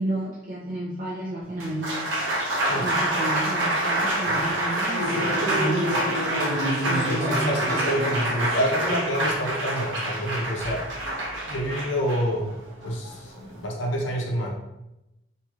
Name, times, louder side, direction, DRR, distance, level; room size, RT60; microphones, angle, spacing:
voice 1, 0.0-1.9 2.7-5.9 6.8-7.5, right 1 dB, 50° right, -6 dB, 0.5 m, -31 dB
Applause, 1.4-13.7, right 1 dB, 80° right, 0.8 m, -26 dB
voice 2, 6.8-11.0 11.5-12.5 12.8-14.5, equal, 80° left, -2 dB, 0.7 m, -28 dB
2.9 x 2.7 x 2.3 m, 0.92 s
head